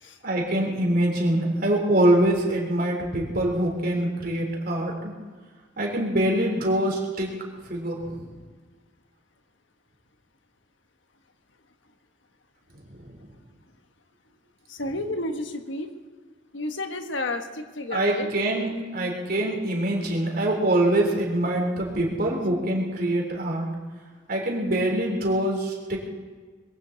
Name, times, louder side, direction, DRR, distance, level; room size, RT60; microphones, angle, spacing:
voice 1, 0.2-5.1 5.8-7.4 7.6-8.3 12.9-13.1 17.9-23.7 24.3-26.0, right 1 dB, 50° right, 0 dB, 3.6 m, -24 dB
voice 2, 14.7-15.9 16.5-18.3, left 2 dB, 80° left, 7 dB, 1.4 m, -31 dB
22.0 x 15.5 x 4.1 m, 1.5 s
head